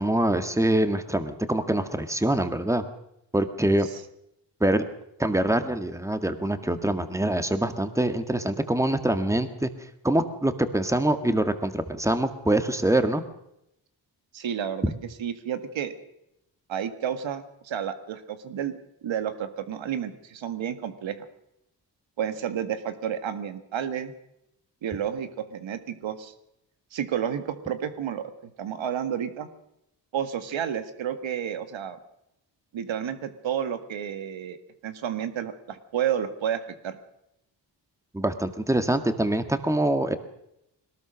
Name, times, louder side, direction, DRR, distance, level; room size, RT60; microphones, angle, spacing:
voice 1, 0.0-2.8 3.3-3.9 4.6-4.8 5.2-9.7 10.0-13.2 14.8-14.9 38.1-40.2, right 1 dB, 5° right, 8 dB, 2.0 m, -24 dB
voice 2, 14.3-14.9 15.2-15.9 16.7-18.7 19.0-21.2 22.2-24.1 24.8-26.3 26.9-29.5 30.1-32.0 32.7-34.6 34.8-37.0, right 9 dB, 85° right, 10 dB, 1.8 m, -31 dB
21.5 x 19.0 x 6.4 m, 0.81 s
cardioid pair, 80°, 45 cm